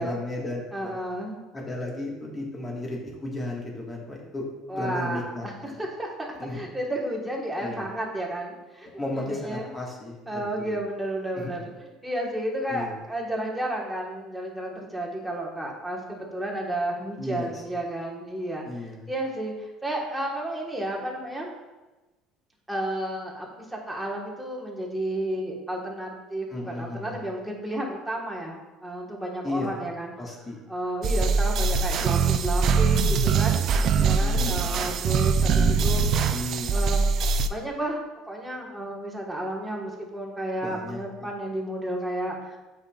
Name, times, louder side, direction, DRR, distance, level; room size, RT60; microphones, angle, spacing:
voice 1, 0.0-1.0 1.5-4.4 4.7-5.4 6.4-6.6 7.6-7.8 9.0-10.7 11.3-11.6 12.7-12.9 17.2-17.6 18.6-19.1 26.5-27.1 29.4-29.8 30.2-30.6 33.9-35.0 36.0-36.8 40.6-41.3, left 2 dB, 20° left, -2 dB, 1.5 m, -34 dB
voice 2, 0.7-1.4 4.7-5.2 5.6-9.7 10.3-18.7 19.1-21.5 22.7-30.1 30.7-36.0 36.7-38.0 38.3-42.6, right 1 dB, 5° right, -2 dB, 1.4 m, -32 dB
sound 1, 31.0-37.5, right 5 dB, 50° right, 0.4 m, -22 dB
8.0 x 5.2 x 2.4 m, 1.1 s
cardioid pair, 115°, 0 cm